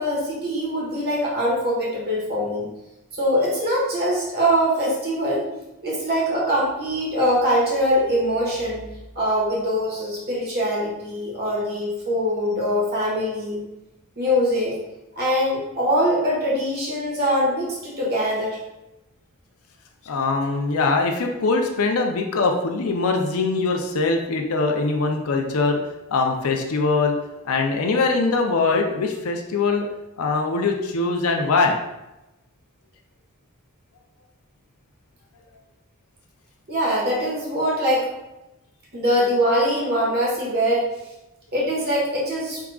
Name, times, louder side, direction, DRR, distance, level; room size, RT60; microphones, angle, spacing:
voice 1, 0.0-2.7 3.1-5.5 5.8-8.9 9.1-13.6 14.2-14.8 15.1-18.6 36.7-38.1 38.9-40.9 41.5-42.6, equal, 45° right, -4 dB, 1.5 m, -23 dB
voice 2, 20.1-25.8 26.1-27.1 27.4-29.9 30.2-31.8, left 3 dB, 65° left, 2 dB, 0.5 m, -22 dB
4.8 x 3.6 x 2.3 m, 0.96 s
head